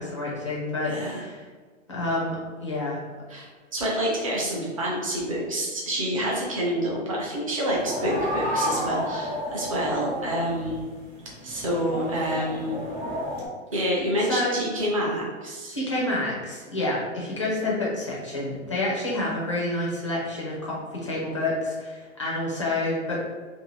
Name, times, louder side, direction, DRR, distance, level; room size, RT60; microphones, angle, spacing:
voice 1, 0.0-1.4 1.9-3.0 14.3-14.6 15.7-23.2, left 2 dB, 25° left, -5 dB, 0.4 m, -28 dB
voice 2, 0.9-1.2 3.3-10.8 11.4-12.8 13.7-15.8, equal, 25° right, -4 dB, 0.5 m, -28 dB
sound 1, 7.7-13.5, equal, 50° right, 1.0 m, -31 dB
2.6 x 2.6 x 3.1 m, 1.5 s
hypercardioid pair, 175°, 38 cm